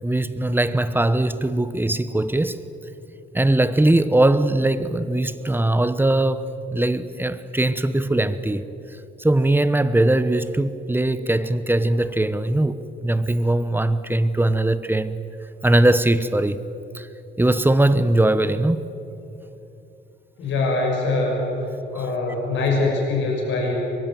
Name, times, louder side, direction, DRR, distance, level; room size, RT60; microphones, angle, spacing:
voice 1, 0.0-2.6 3.3-6.4 6.7-8.6 9.2-15.2 15.6-16.6 16.9-17.1 17.4-18.9 21.9-22.0, right 1 dB, 10° right, 1.1 m, -20 dB
voice 2, 20.4-21.5 21.9-23.7, left 3 dB, 70° left, 6.2 m, -23 dB
23.5 x 22.5 x 7.7 m
cardioid pair, 90°, 20 cm